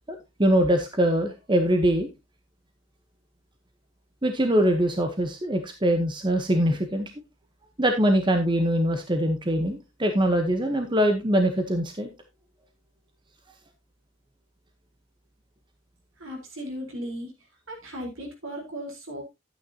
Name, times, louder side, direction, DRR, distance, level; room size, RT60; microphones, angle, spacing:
voice 1, 0.4-2.1 4.2-7.1 7.8-12.1, right 1 dB, 20° right, 5 dB, 1.0 m, -23 dB
voice 2, 16.2-17.3 17.7-19.2, equal, 70° right, 1 dB, 4.0 m, -36 dB
11.5 x 9.2 x 2.8 m, 0.23 s
head